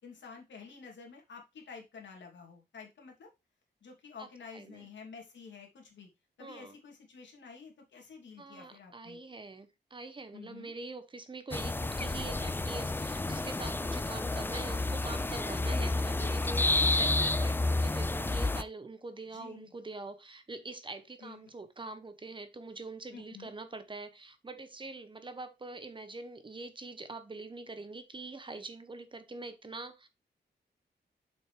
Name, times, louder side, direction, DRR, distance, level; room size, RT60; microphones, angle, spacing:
voice 1, 0.0-3.3 3.8-6.1 6.4-9.2 10.3-10.7 19.3-19.7 21.2-21.4 23.1-23.5, left 5 dB, 90° left, 2.8 m, -50 dB
voice 2, 4.2-4.9 6.4-6.8 8.4-30.1, right 3 dB, 25° right, 1.0 m, -44 dB
sound 1, 11.5-18.6, left 2 dB, 10° left, 0.3 m, -30 dB
7.1 x 5.8 x 3.3 m
wide cardioid pair, 120°, 18 cm